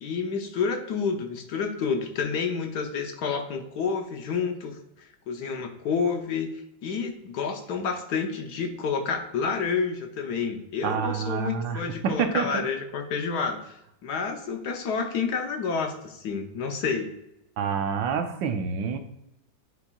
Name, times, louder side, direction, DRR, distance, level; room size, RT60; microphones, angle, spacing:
voice 1, 0.0-4.8 5.3-6.5 6.8-13.7 14.0-17.1, left 5 dB, 65° left, 5 dB, 1.2 m, -29 dB
voice 2, 10.8-12.6 17.6-19.0, right 6 dB, 75° right, 7 dB, 1.4 m, -28 dB
9.8 x 4.2 x 2.3 m, 0.84 s
omnidirectional pair, 2.1 m